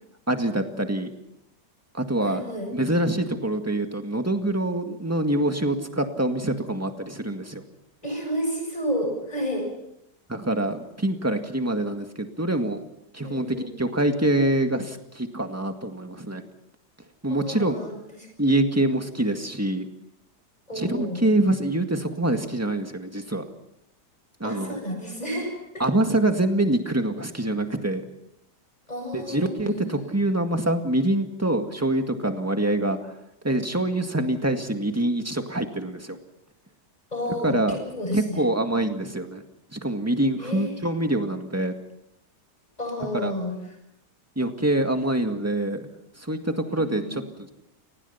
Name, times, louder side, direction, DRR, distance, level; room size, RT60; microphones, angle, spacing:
voice 1, 0.3-1.1 1.9-2.4 2.7-7.6 10.3-12.8 13.1-16.4 17.2-17.8 18.4-19.9 20.7-23.4 24.4-24.8 25.8-28.0 29.1-33.1 33.4-36.2 37.4-37.8 38.1-39.4 39.7-41.7 43.1-43.3 44.4-45.9 46.2-47.5, right 1 dB, 10° right, 5 dB, 1.8 m, -25 dB
voice 2, 2.2-2.7 8.0-9.7 13.2-13.7 17.3-17.9 20.7-21.2 24.4-25.8 28.9-29.9 37.1-38.4 38.7-38.9 40.4-40.7 42.8-43.5 46.7-47.2, equal, 20° left, 2 dB, 7.8 m, -31 dB
29.5 x 19.0 x 5.8 m, 0.80 s
omnidirectional pair, 1.8 m